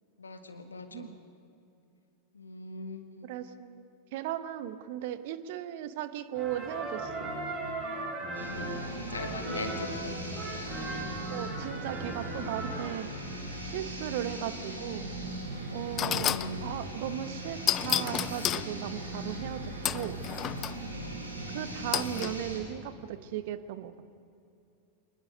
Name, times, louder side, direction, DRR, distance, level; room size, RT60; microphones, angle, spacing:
voice 1, 0.2-1.1 2.3-3.3 8.4-10.2 15.7-16.6 20.9-21.2, left 2 dB, 75° left, 7 dB, 1.7 m, -41 dB
voice 2, 3.2-7.3 11.3-13.1 13.6-15.1 15.7-20.2 21.5-23.9, right 11 dB, 50° right, 12 dB, 1.0 m, -37 dB
sound 1, 6.3-12.9, right 2 dB, 35° right, 6.6 m, -38 dB
sound 2, 8.3-22.6, right 1 dB, 80° right, 3.8 m, -39 dB
sound 3, 15.3-15.4 16.0-16.5 17.7-18.7 19.9-20.8 21.9-22.3, left 11 dB, 30° left, 0.5 m, -30 dB
25.5 x 20.5 x 5.3 m, 2.7 s
figure-of-eight pair, 90°, 0 cm